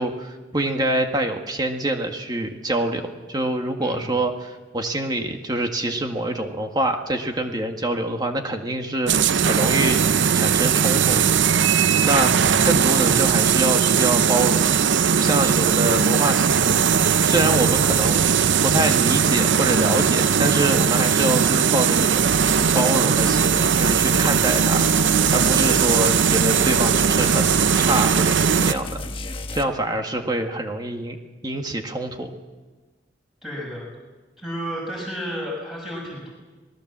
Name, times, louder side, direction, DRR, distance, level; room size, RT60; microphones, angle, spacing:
voice 1, 0.0-10.1 10.3-11.4 12.0-12.3 12.6-14.6 15.1-16.8 17.2-18.2 18.6-22.2 22.7-24.9 25.3-29.0 29.5-31.2 31.4-32.3, right 1 dB, 25° right, 4 dB, 1.8 m, -25 dB
voice 2, 3.8-4.1 33.4-33.9 34.4-36.3, equal, ahead, -4 dB, 6.5 m, -32 dB
sound 1, 9.1-28.7, right 7 dB, 85° right, 0.6 m, -19 dB
sound 2, 22.3-22.8 23.2-29.6, left 2 dB, 30° left, 1.4 m, -33 dB
27.0 x 19.0 x 7.5 m, 1.3 s
head